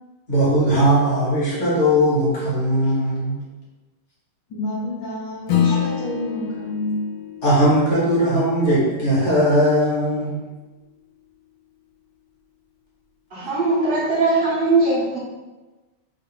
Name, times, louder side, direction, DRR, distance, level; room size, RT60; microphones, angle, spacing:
voice 1, 0.3-3.4 5.7-5.8 7.4-10.4, equal, 45° left, -7 dB, 1.0 m, -19 dB
voice 2, 4.5-7.0, left 1 dB, 65° left, -8 dB, 1.4 m, -28 dB
Acoustic guitar / Strum, 5.5-10.3, left 8 dB, 90° left, 0.9 m, -27 dB
voice 3, 13.3-15.2, right 3 dB, 60° right, -7 dB, 0.6 m, -20 dB
3.6 x 2.3 x 3.7 m, 1.2 s
omnidirectional pair, 2.4 m